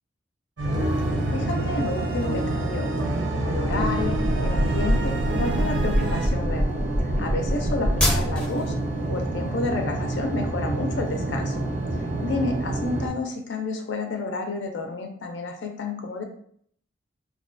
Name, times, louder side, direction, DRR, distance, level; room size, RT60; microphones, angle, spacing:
sound 1, 0.6-13.1, right 2 dB, 45° right, 0.4 m, -29 dB
sound 2, 0.6-6.3, right 1 dB, 85° right, 0.6 m, -29 dB
voice 1, 1.3-2.9 3.3-6.7 7.0-8.7 9.1-11.6 12.2-16.2, left 3 dB, 75° left, 4 dB, 0.4 m, -30 dB
sound 3, 3.5-8.7, equal, 5° left, 0.5 m, -25 dB
2.3 x 2.2 x 2.4 m, 0.63 s
head